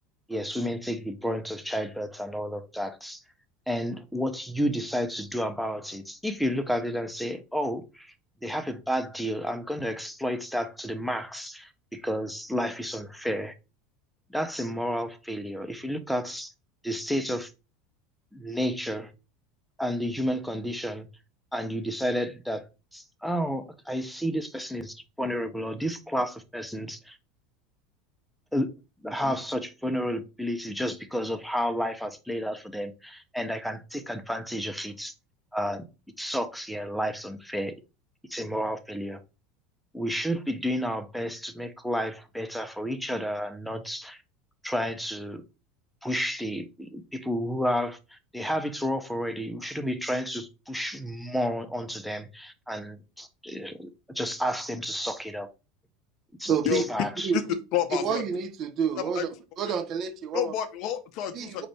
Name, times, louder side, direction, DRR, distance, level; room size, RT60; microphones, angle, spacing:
voice 1, 0.3-3.2 3.7-8.1 8.4-13.5 14.3-16.5 16.8-17.5 18.3-19.1 19.8-21.1 21.5-22.7 22.9-27.2 28.5-28.7 29.0-35.1 35.5-35.8 36.2-37.8 38.3-39.2 39.9-44.2 44.6-45.4 46.0-55.5 56.4-57.3, equal, ahead, 0.6 m, -31 dB
voice 2, 56.5-56.8 57.2-57.4 58.0-59.3 59.6-60.5 61.3-61.7, right 7 dB, 45° right, 0.6 m, -28 dB
voice 3, 57.7-58.2 59.0-59.3 59.7-59.8 60.3-61.7, left 10 dB, 55° left, 0.6 m, -29 dB
4.3 x 2.5 x 3.4 m
hypercardioid pair, 85°, 0 cm